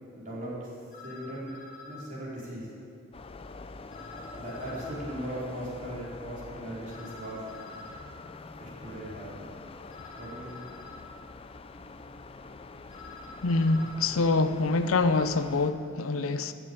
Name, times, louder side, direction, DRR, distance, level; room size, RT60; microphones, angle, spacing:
voice 1, 0.2-0.7 1.0-1.5 1.9-2.7 4.4-7.4 8.6-9.4 10.2-10.6, right 1 dB, 40° right, 4.1 m, -38 dB
sound 1, 0.9-2.0 3.9-5.0 6.9-8.1 9.9-11.1 12.9-14.0, left 2 dB, 40° left, 1.7 m, -47 dB
sound 2, 3.1-15.7, left 3 dB, 25° left, 0.4 m, -45 dB
voice 2, 13.4-16.5, left 3 dB, 75° left, 0.6 m, -25 dB
13.5 x 7.2 x 8.6 m
head